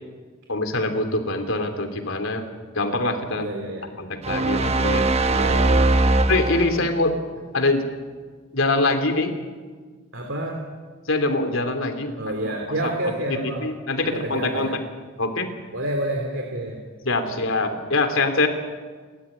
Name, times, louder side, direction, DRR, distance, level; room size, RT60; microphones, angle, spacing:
voice 1, 0.5-2.4 2.7-3.5 4.0-5.1 6.3-7.2 7.5-7.8 8.5-9.3 11.1-12.1 12.8-12.9 13.6-14.7 15.2-15.5 17.0-18.5, left 2 dB, 85° left, 7 dB, 3.0 m, -23 dB
voice 2, 3.3-3.9 5.3-6.2 10.1-10.6 12.1-13.7 14.0-14.8 15.7-16.8 17.3-17.4, right 1 dB, 70° right, 2 dB, 3.1 m, -29 dB
sound 1, 4.2-7.0, right 2 dB, 30° right, 1.0 m, -20 dB
29.5 x 13.0 x 9.9 m, 1.5 s
head